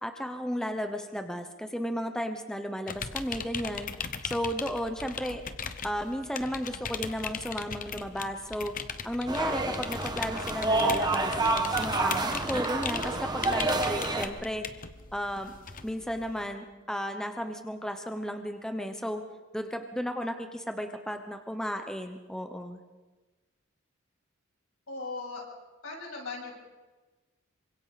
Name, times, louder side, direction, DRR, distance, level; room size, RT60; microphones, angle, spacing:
voice 1, 0.0-3.9 4.2-5.4 5.8-8.7 9.0-11.3 11.8-14.8 15.1-15.5 15.8-19.2 19.5-22.8, equal, 5° left, 6 dB, 0.9 m, -34 dB
sound 1, 2.9-16.5, left 6 dB, 40° left, 1.0 m, -39 dB
sound 2, 9.3-14.3, right 2 dB, 20° right, 1.4 m, -28 dB
voice 2, 24.9-25.4 25.8-26.5, left 3 dB, 80° left, -2 dB, 7.6 m, -38 dB
27.0 x 24.5 x 4.1 m, 1.3 s
head